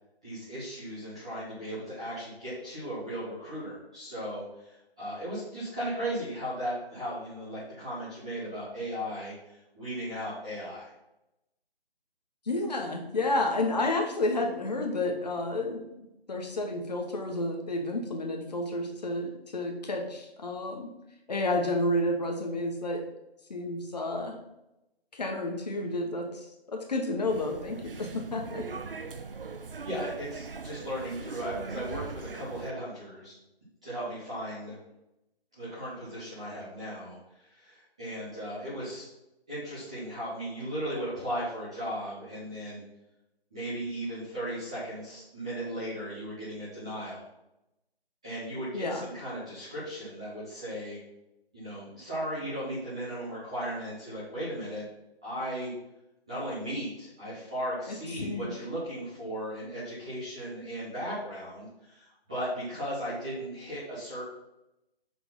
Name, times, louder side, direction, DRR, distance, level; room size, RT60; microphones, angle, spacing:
voice 1, 0.2-10.9 29.8-33.3 33.8-34.8 35.5-39.1 39.5-42.8 43.5-47.2 48.2-51.0 51.5-54.8 55.2-55.7 56.3-64.2, equal, 5° right, -13 dB, 0.7 m, -36 dB
voice 2, 12.4-20.9 21.3-23.1 23.5-24.4 25.1-28.7 48.7-49.1 57.9-58.6, left 2 dB, 40° left, 2 dB, 1.5 m, -31 dB
sound 1, 27.3-32.7, right 4 dB, 60° right, 0.7 m, -40 dB
6.6 x 4.6 x 5.6 m, 0.89 s
figure-of-eight pair, 160°, 31 cm